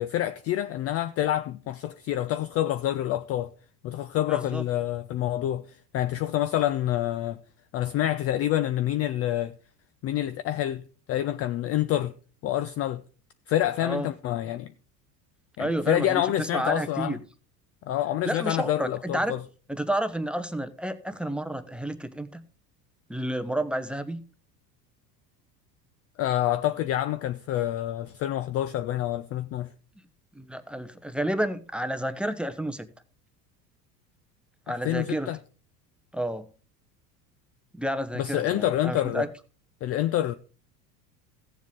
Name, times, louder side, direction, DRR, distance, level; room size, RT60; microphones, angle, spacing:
voice 1, 0.0-3.5 3.8-7.4 7.7-9.5 10.0-10.8 11.1-12.1 12.4-13.0 13.5-14.7 15.6-17.2 17.9-19.4 26.2-29.7 34.7-35.4 38.2-39.3 39.8-40.3, left 13 dB, 30° left, 0.4 m, -27 dB
voice 2, 4.3-4.6 13.8-14.1 15.6-17.2 18.2-19.3 19.7-22.4 23.1-24.2 30.3-32.9 34.7-35.3 36.1-36.5 37.7-39.3, right 1 dB, ahead, 0.8 m, -30 dB
15.5 x 7.3 x 3.7 m
hypercardioid pair, 75°, 50 cm